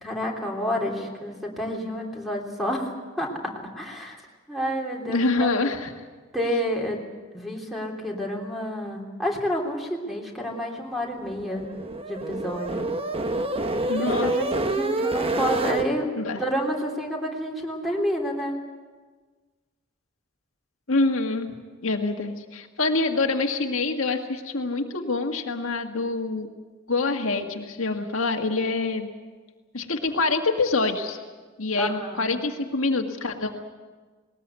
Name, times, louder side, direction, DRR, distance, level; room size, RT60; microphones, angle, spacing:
voice 1, 0.0-2.9 3.2-4.2 4.5-5.7 6.3-7.0 7.3-11.6 12.1-12.9 14.0-16.1 16.4-18.5 31.8-32.3, equal, ahead, 0 dB, 3.3 m, -29 dB
voice 2, 5.1-5.9 13.9-14.3 16.2-16.4 20.9-21.5 21.8-26.5 26.9-29.1 29.7-31.2 31.6-33.6, left 3 dB, 75° left, 3 dB, 1.8 m, -25 dB
sound 1, 11.2-15.9, right 2 dB, 30° right, 1.1 m, -27 dB
20.0 x 19.5 x 8.3 m, 1.4 s
head